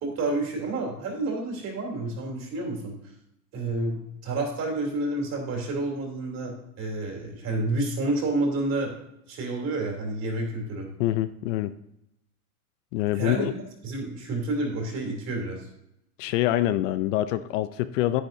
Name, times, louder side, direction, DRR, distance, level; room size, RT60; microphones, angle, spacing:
voice 1, 0.0-2.9 3.5-8.9 9.3-10.9 13.1-13.5 13.8-15.7, right 2 dB, 35° right, 0 dB, 3.1 m, -29 dB
voice 2, 11.0-11.7 12.9-13.5 16.2-18.2, left 14 dB, 60° left, 13 dB, 0.5 m, -25 dB
10.0 x 9.1 x 2.6 m, 0.81 s
supercardioid pair, 135°, 44 cm